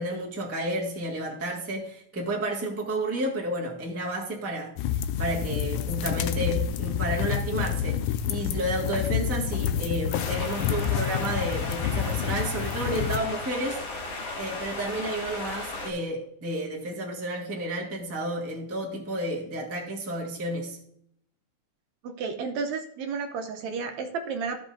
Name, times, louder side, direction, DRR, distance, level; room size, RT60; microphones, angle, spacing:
voice 1, 0.0-13.8 14.3-20.8, right 1 dB, 10° right, -3 dB, 0.8 m, -31 dB
sound 1, 4.8-13.2, left 9 dB, 90° left, 2.1 m, -28 dB
sound 2, 10.1-15.9, left 3 dB, 70° left, 2.7 m, -36 dB
voice 2, 22.0-24.6, right 5 dB, 75° right, 5 dB, 2.0 m, -32 dB
14.5 x 6.0 x 2.7 m, 0.70 s
omnidirectional pair, 3.5 m